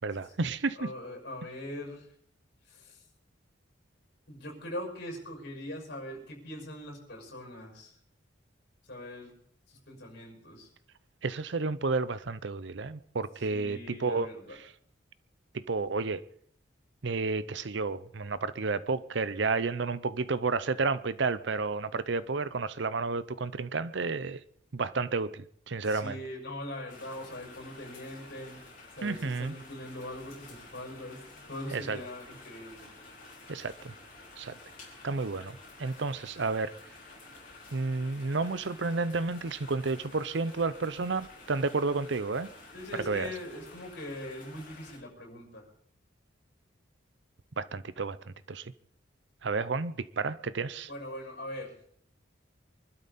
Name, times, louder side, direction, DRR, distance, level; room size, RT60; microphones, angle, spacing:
voice 1, 0.0-0.9 11.2-14.3 14.6-14.7 15.5-16.2 17.0-24.4 24.7-26.2 29.0-29.5 31.7-32.0 33.5-33.9 34.4-34.5 35.0-36.7 37.7-42.5 43.1-43.3 47.6-48.2 48.5-48.7 49.4-50.9, right 4 dB, 65° right, 0.6 m, -31 dB
voice 2, 0.8-2.1 2.7-3.0 4.3-8.0 8.9-9.3 9.7-10.7 13.5-14.6 25.8-28.6 28.9-32.9 42.7-45.7 50.9-51.7, left 1 dB, 60° left, 6.2 m, -42 dB
sound 1, 26.9-45.0, left 2 dB, 40° left, 4.3 m, -51 dB
24.5 x 12.0 x 4.2 m
head